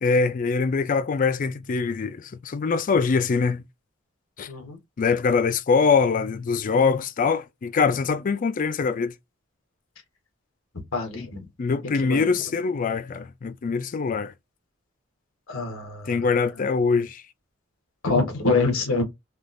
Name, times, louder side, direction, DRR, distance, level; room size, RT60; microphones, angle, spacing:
voice 1, 0.0-3.6 4.4-4.5 5.0-9.1 11.2-11.3 11.6-14.3 16.1-17.2, left 5 dB, 40° left, 0.4 m, -23 dB
voice 2, 4.5-4.8 10.9-11.5 12.0-12.3 15.5-16.3 18.0-19.0, left 3 dB, 85° left, 1.2 m, -25 dB
3.5 x 2.4 x 2.5 m
head